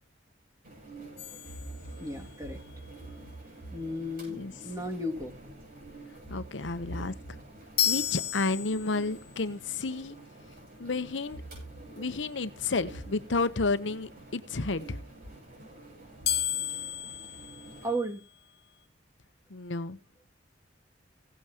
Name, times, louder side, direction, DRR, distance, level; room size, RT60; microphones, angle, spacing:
sound 1, 0.6-17.9, right 2 dB, 50° right, 7.9 m, -50 dB
sound 2, 1.2-2.5 7.8-9.3 16.2-18.4, left 11 dB, 60° left, 1.4 m, -33 dB
voice 1, 2.0-2.6 3.7-5.4 17.8-18.2, equal, 20° right, 3 dB, 2.4 m, -34 dB
voice 2, 6.3-7.4 7.9-10.2 10.8-11.4 12.0-15.0 19.5-20.0, left 3 dB, 80° left, 13 dB, 0.9 m, -31 dB
17.0 x 9.2 x 3.0 m, 0.32 s
head